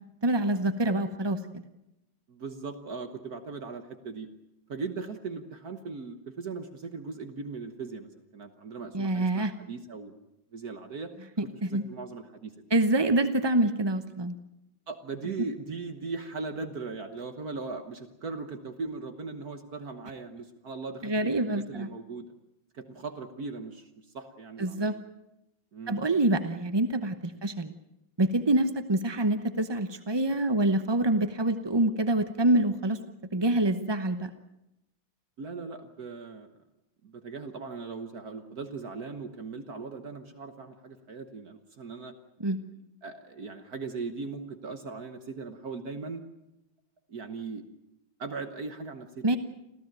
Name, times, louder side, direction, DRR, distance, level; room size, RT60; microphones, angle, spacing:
voice 1, 0.2-1.4 8.9-9.5 11.4-11.8 12.7-14.4 21.0-21.9 24.6-24.9 25.9-27.7 28.2-33.0 33.3-34.3 42.4-42.6 49.2-49.4, right 1 dB, 35° right, 10 dB, 0.4 m, -26 dB
voice 2, 2.3-4.3 4.7-10.2 10.5-11.1 11.6-12.5 14.9-22.3 22.7-24.9 25.7-26.0 27.3-27.4 35.4-36.5 37.0-42.1 43.0-46.2 47.1-47.6 48.2-49.4, right 4 dB, 55° right, 8 dB, 1.7 m, -39 dB
27.0 x 15.5 x 9.1 m, 0.90 s
omnidirectional pair, 2.1 m